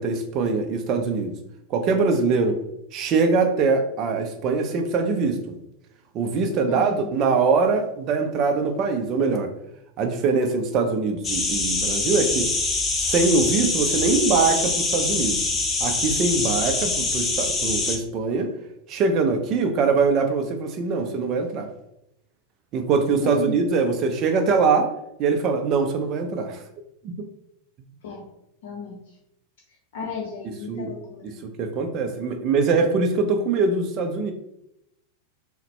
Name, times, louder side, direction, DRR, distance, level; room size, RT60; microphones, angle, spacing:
voice 1, 0.0-1.3 1.7-2.6 2.9-5.6 6.1-9.5 10.0-12.5 13.0-15.4 15.8-18.5 18.9-21.7 22.7-24.9 25.2-26.6 27.0-27.1 30.7-30.9 31.6-34.3, right 4 dB, 35° right, 5 dB, 0.5 m, -23 dB
voice 2, 6.7-7.1 23.2-23.6 28.0-28.2 28.6-29.0 29.9-31.5, left 4 dB, 55° left, -1 dB, 0.7 m, -34 dB
sound 1, 11.2-18.0, left 3 dB, 20° left, 0.7 m, -24 dB
3.9 x 2.1 x 4.2 m, 0.82 s
figure-of-eight pair, 90°, 0 cm